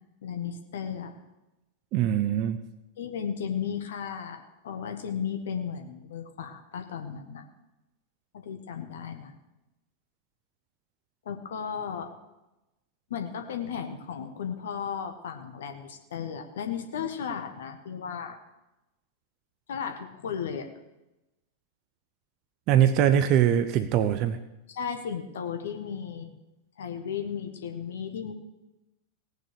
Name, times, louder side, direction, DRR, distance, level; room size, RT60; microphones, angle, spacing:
voice 1, 0.2-1.2 3.0-7.5 8.3-9.4 11.2-12.1 13.1-18.4 19.7-20.7 24.7-26.3 26.8-28.3, left 7 dB, 60° left, 6 dB, 1.3 m, -35 dB
voice 2, 1.9-2.6 22.7-24.4, right 10 dB, 40° right, 11 dB, 0.7 m, -22 dB
18.0 x 6.4 x 6.7 m, 0.98 s
figure-of-eight pair, 90°, 0 cm